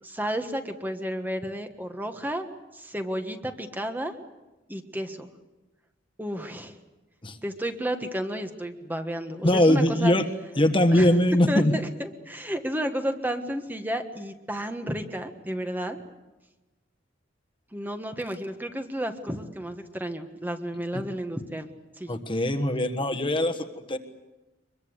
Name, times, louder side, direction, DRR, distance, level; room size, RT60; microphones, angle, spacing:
voice 1, 0.0-2.5 2.7-4.1 4.7-5.3 6.2-6.8 7.4-10.1 10.9-11.1 11.5-16.0 17.7-21.7 22.0-22.2, equal, 10° right, 6 dB, 1.4 m, -32 dB
voice 2, 9.4-10.2 10.6-11.7 22.1-24.0, left 1 dB, 30° left, 9 dB, 1.5 m, -22 dB
24.5 x 22.5 x 8.1 m, 1.1 s
head